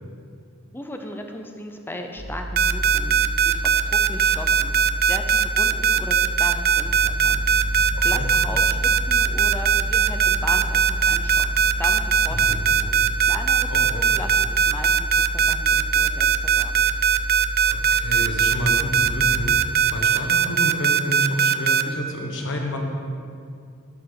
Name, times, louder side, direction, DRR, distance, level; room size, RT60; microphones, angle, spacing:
voice 1, 0.7-4.8 5.1-7.8 8.0-11.5 11.8-16.9, left 1 dB, 10° left, 4 dB, 0.6 m, -36 dB
sound 1, 2.2-19.5, right 1 dB, 60° right, 1.3 m, -30 dB
sound 2, 2.6-21.8, right 7 dB, 45° right, 0.4 m, -19 dB
voice 2, 7.9-8.3 12.3-12.6 13.7-14.0 17.7-22.8, equal, 55° left, 1 dB, 1.3 m, -30 dB
8.6 x 6.1 x 6.9 m, 2.4 s
head